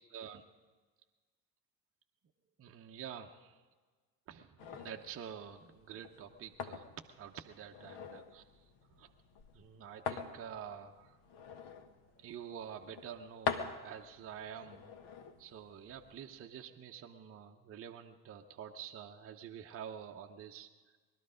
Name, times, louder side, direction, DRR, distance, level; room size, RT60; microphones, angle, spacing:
voice 1, 0.1-0.4 2.6-3.6 4.3-8.4 9.0-9.1 9.5-11.2 12.2-14.9 15.4-20.7, right 8 dB, 25° right, 3 dB, 0.9 m, -48 dB
sound 1, 4.6-16.4, left 6 dB, 50° left, 1.4 m, -45 dB
20.5 x 12.5 x 5.1 m, 1.4 s
figure-of-eight pair, 65°, 50 cm